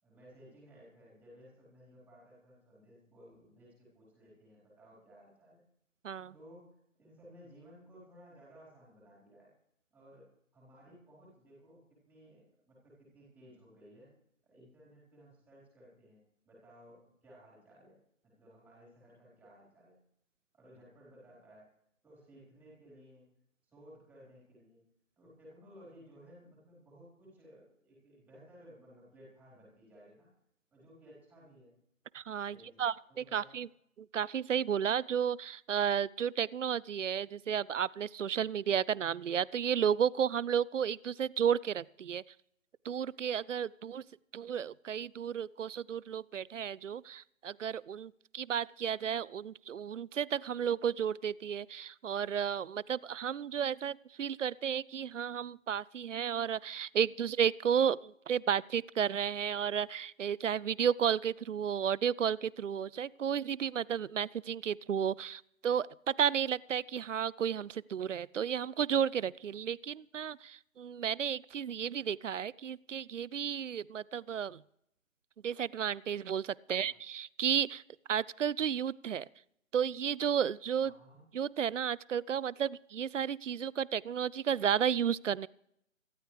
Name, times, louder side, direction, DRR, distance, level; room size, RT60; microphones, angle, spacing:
voice 1, 0.0-5.6 6.3-9.5 9.9-14.1 14.4-18.0 18.2-20.0 20.5-21.7 22.0-23.3 23.7-24.8 25.2-30.3 30.7-31.7 32.5-33.6 76.7-76.9 80.8-81.2, equal, 5° right, -6 dB, 4.3 m, -58 dB
voice 2, 32.1-33.7 34.1-42.2 42.8-44.0 44.3-74.6 75.4-77.8 78.1-79.3 79.7-80.9 81.3-85.5, right 8 dB, 65° right, 23 dB, 0.5 m, -33 dB
24.5 x 12.5 x 3.3 m, 0.74 s
figure-of-eight pair, 160°, 40 cm